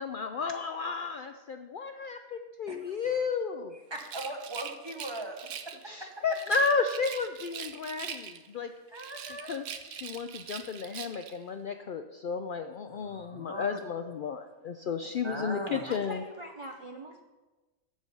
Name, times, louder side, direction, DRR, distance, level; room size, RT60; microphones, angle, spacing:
voice 1, 0.0-3.7 5.9-8.7 9.5-9.6 9.9-16.2, left 5 dB, 85° left, 7 dB, 0.4 m, -33 dB
voice 2, 2.7-3.2 3.7-5.4 6.0-6.2 8.9-9.6 12.9-14.1 15.1-16.0, right 1 dB, 20° right, 2 dB, 0.9 m, -40 dB
Rattle, 3.9-5.9 6.3-8.6 8.9-11.4, right 8 dB, 65° right, 1.0 m, -42 dB
voice 3, 15.9-17.2, right 1 dB, 40° right, 3 dB, 0.4 m, -43 dB
14.0 x 4.9 x 5.4 m, 1.2 s
omnidirectional pair, 1.4 m